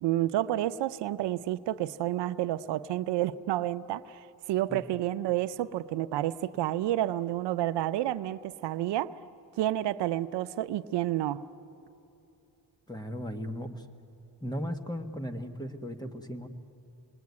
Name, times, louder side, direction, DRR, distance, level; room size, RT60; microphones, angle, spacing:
voice 1, 0.0-9.2 9.6-11.4, right 13 dB, 80° right, 0.7 m, -30 dB
voice 2, 12.9-13.8 14.4-16.5, equal, 10° left, 1.5 m, -36 dB
27.0 x 21.0 x 9.6 m
cardioid pair, 105°, 41 cm